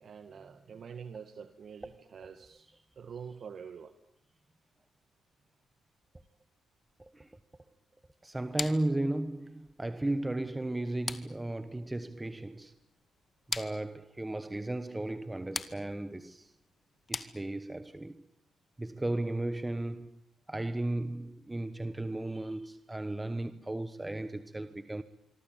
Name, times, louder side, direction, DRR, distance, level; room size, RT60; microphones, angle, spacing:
voice 1, 0.0-2.7 3.0-3.9, right 6 dB, 55° right, 1.8 m, -46 dB
voice 2, 7.0-7.4 8.2-12.7 13.5-16.5 17.1-18.2 18.8-20.1 20.5-25.0, right 1 dB, 15° right, 1.2 m, -35 dB
sound 1, 8.6-17.9, left 4 dB, 30° left, 2.0 m, -43 dB
25.0 x 24.5 x 9.0 m
cardioid pair, 90°, 0 cm